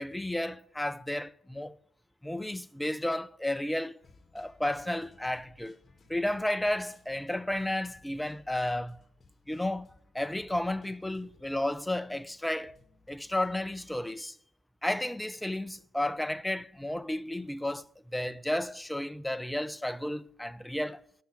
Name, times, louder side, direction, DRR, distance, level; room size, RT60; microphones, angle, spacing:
voice 1, 0.0-1.8 2.2-4.0 4.3-5.8 6.1-9.0 9.5-12.8 13.1-14.4 14.8-21.0, left 1 dB, 5° left, 0.5 m, -32 dB
sound 1, 4.0-14.1, left 3 dB, 35° left, 2.0 m, -61 dB
11.5 x 5.6 x 8.6 m
hypercardioid pair, 50°, 0 cm